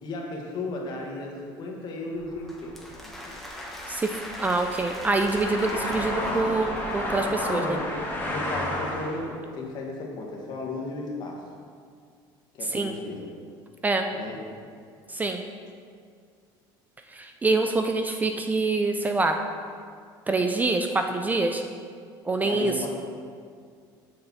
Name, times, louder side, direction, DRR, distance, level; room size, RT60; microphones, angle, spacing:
voice 1, 0.0-3.4 7.4-7.8 8.2-11.4 12.5-13.3 14.1-14.4 22.4-22.9, left 2 dB, 50° left, -1 dB, 1.5 m, -35 dB
sound 1, 2.2-9.3, left 1 dB, 20° left, 1.6 m, -32 dB
sound 2, 2.5-7.7, equal, ahead, 1.0 m, -42 dB
voice 2, 3.9-7.8 12.7-12.9 13.8-14.1 15.1-15.4 17.1-19.4 20.3-21.6 22.3-22.7, right 3 dB, 15° right, 5 dB, 0.4 m, -25 dB
6.6 x 6.5 x 4.1 m, 2.1 s
cardioid pair, 130°, 10 cm